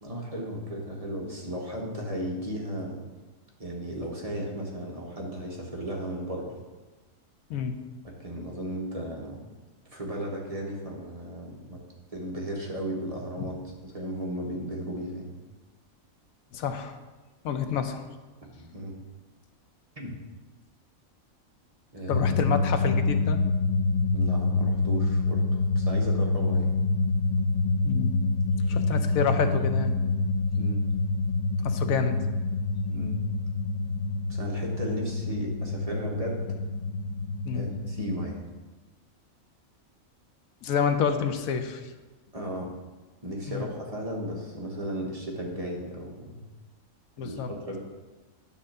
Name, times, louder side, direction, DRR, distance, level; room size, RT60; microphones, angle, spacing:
voice 1, 0.0-3.0 3.6-6.6 8.0-9.4 9.9-11.8 12.1-15.3 18.4-19.0 20.0-20.2 21.9-22.3 24.1-26.7 28.7-28.8 30.5-30.8 32.9-33.2 34.3-36.5 37.5-38.4 42.3-42.8 43.2-46.4 47.2-47.8, equal, 25° right, -2 dB, 1.2 m, -35 dB
voice 2, 16.5-17.0 17.4-18.0 22.1-23.4 27.8-28.1 28.6-29.9 31.6-32.2 37.5-37.7 40.6-41.9 43.5-43.7 47.2-47.5, left 6 dB, 85° left, 8 dB, 1.1 m, -28 dB
sound 1, 22.1-38.3, left 3 dB, 60° left, 0.4 m, -27 dB
9.8 x 3.7 x 6.4 m, 1.2 s
omnidirectional pair, 1.4 m